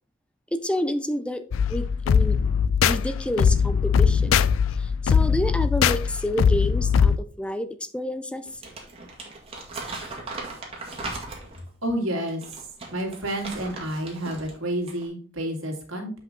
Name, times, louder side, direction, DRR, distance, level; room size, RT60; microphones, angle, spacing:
voice 1, 0.5-1.4 1.7-2.4 2.8-4.4 4.8-8.5, equal, 5° left, 11 dB, 0.4 m, -29 dB
sound 1, 1.5-7.2, left 6 dB, 75° left, 0.3 m, -21 dB
Crumpling crinkling, 8.5-11.7 12.3-14.5 14.8-15.1, right 2 dB, 30° right, 2.0 m, -38 dB
voice 2, 11.8-12.6 12.9-16.1, right 1 dB, 90° right, 1 dB, 2.3 m, -30 dB
8.1 x 5.4 x 3.7 m, 0.41 s
head